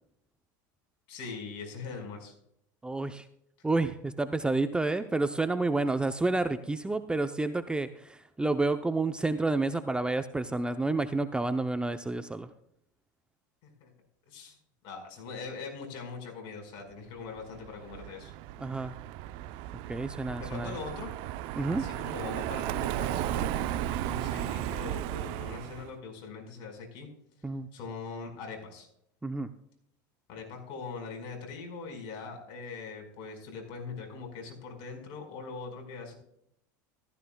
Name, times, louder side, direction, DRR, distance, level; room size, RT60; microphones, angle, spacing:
voice 1, 1.1-2.3 13.8-13.9 14.3-14.6 14.8-18.3 20.4-21.1 21.7-27.1 27.7-28.9 30.3-36.1, left 4 dB, 55° left, 3 dB, 5.0 m, -41 dB
voice 2, 2.8-3.2 3.6-12.5 18.6-18.9 19.9-20.7 21.6-21.8 27.4-27.7 29.2-29.5, right 2 dB, 10° right, 9 dB, 0.7 m, -29 dB
Car passing by, 17.4-25.9, right 13 dB, 60° right, 0.6 m, -35 dB
15.0 x 14.0 x 2.3 m, 0.73 s
hypercardioid pair, 105°, 10 cm